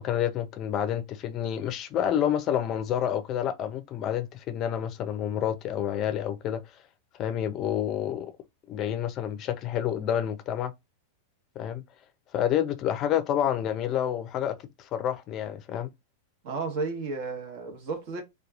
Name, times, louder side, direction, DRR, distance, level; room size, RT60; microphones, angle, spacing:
voice 1, 0.0-6.6 7.2-8.3 8.7-10.7 11.6-11.8 12.3-15.9, left 10 dB, 40° left, 0.4 m, -29 dB
voice 2, 16.4-18.2, right 4 dB, 60° right, 1.1 m, -33 dB
2.8 x 2.3 x 2.4 m
hypercardioid pair, 120°, 0 cm